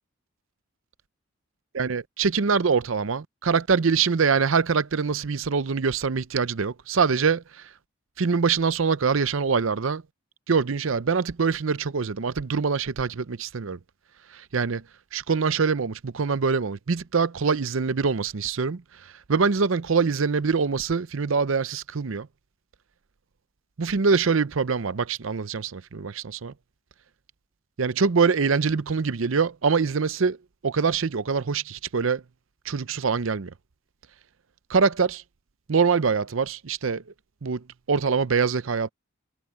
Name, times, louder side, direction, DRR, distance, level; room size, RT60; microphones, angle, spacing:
voice 1, 1.7-7.7 8.2-10.0 10.5-13.8 14.3-14.8 15.1-22.3 23.8-26.5 27.8-30.4 30.6-32.2 32.6-33.5 34.7-35.2 35.7-37.0 37.4-38.9, right 5 dB, 70° right, 0.6 m, -24 dB
head